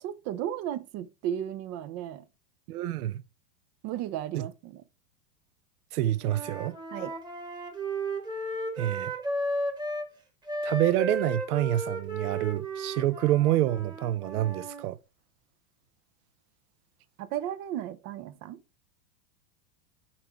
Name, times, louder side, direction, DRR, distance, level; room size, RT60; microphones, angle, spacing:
voice 1, 0.0-2.2 3.8-4.8 6.9-7.1 17.2-18.6, right 11 dB, 35° right, 0.6 m, -34 dB
voice 2, 2.7-3.2 4.3-4.4 5.9-6.7 8.8-9.1 10.6-15.0, right 14 dB, 70° right, 0.8 m, -27 dB
Wind instrument woodwind instrument, 6.2-10.1 10.5-14.8, right 1 dB, 10° right, 1.2 m, -34 dB
5.8 x 4.5 x 4.7 m
supercardioid pair, 130°, 46 cm